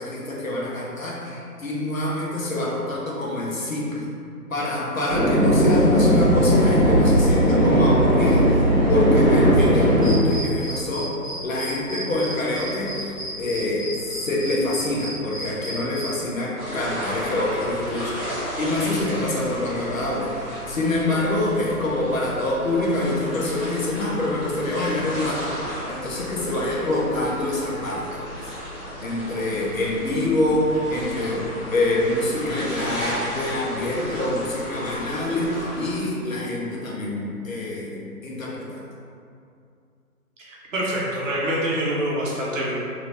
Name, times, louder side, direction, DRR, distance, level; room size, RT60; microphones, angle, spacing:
voice 1, 0.0-4.0 4.5-11.1 11.4-13.1 13.4-25.5 25.9-28.5 29.0-38.8, left 2 dB, 60° left, -4 dB, 0.9 m, -26 dB
sound 1, 5.1-10.1, equal, 25° right, 0.7 m, -17 dB
sound 2, 10.0-16.2, right 1 dB, 30° left, 0.6 m, -34 dB
sound 3, 16.5-36.0, equal, 5° right, 1.2 m, -34 dB
voice 2, 40.4-42.7, right 1 dB, 55° right, -5 dB, 0.9 m, -25 dB
3.0 x 2.7 x 3.2 m, 2.4 s
hypercardioid pair, 170°, 46 cm